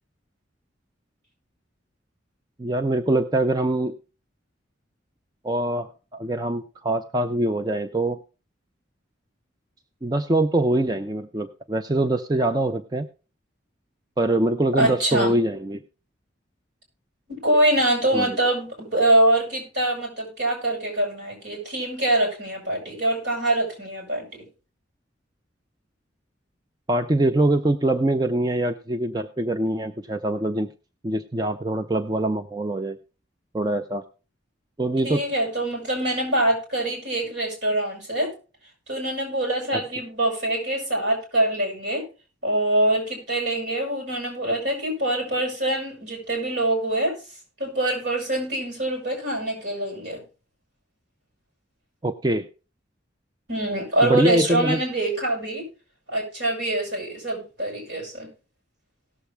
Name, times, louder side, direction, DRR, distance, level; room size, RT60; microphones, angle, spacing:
voice 1, 2.6-3.9 5.4-8.2 10.0-13.1 14.2-15.8 18.1-18.4 26.9-30.7 31.0-33.0 33.5-34.0 34.8-35.2 39.7-39.8 52.0-52.5 54.0-54.8, right 1 dB, 20° right, 8 dB, 0.4 m, -23 dB
voice 2, 14.8-15.3 17.3-24.3 35.0-38.3 38.9-42.0 42.4-47.2 47.6-50.2 53.5-55.7 56.1-58.3, right 1 dB, 65° right, 0 dB, 5.7 m, -24 dB
18.0 x 7.1 x 3.3 m, 0.33 s
head